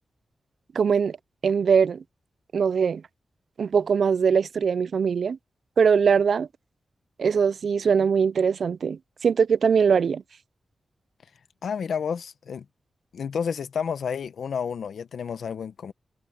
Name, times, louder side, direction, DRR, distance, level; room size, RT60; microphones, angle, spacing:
voice 1, 0.7-1.2 1.4-2.0 2.5-3.0 3.6-5.4 5.8-6.5 7.2-10.2, right 6 dB, 65° right, 0.4 m, -21 dB
voice 2, 11.6-12.6 13.1-15.9, left 7 dB, 80° left, 1.0 m, -30 dB
wide cardioid pair, 115°, 0 cm